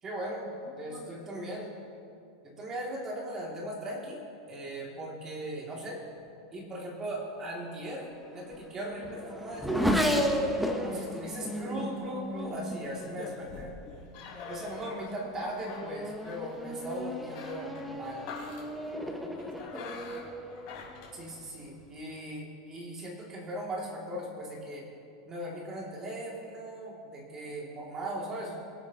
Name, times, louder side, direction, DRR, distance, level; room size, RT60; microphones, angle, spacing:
voice 1, 0.0-1.7 2.4-4.2 4.5-6.0 6.5-10.3 10.8-13.7 14.4-18.3 21.1-24.8 25.2-28.5, right 1 dB, 20° right, -3 dB, 2.3 m, -38 dB
voice 2, 0.6-1.6 13.1-15.1 16.8-16.9 18.9-20.7, left 4 dB, 30° left, 0 dB, 1.2 m, -49 dB
Race car auto racing / Accelerating revving vroom, 8.0-13.8 14.6-15.0 15.4-21.4, equal, ahead, 0.7 m, -34 dB
sound 1, 11.7-21.9, left 4 dB, 45° left, 3.3 m, -48 dB
24.0 x 8.5 x 2.8 m, 2.6 s
supercardioid pair, 160°, 3 cm